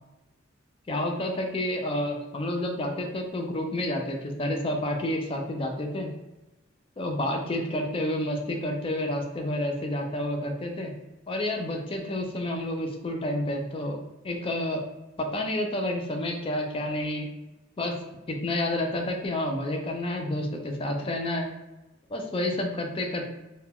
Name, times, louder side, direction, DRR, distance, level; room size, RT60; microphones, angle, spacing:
voice 1, 0.9-6.1 7.0-10.9 11.3-14.0 14.2-14.8 15.2-17.3 17.8-18.0 18.3-21.5 22.1-23.2, left 1 dB, 25° left, 2 dB, 0.3 m, -29 dB
2.2 x 2.1 x 3.5 m, 1.0 s
head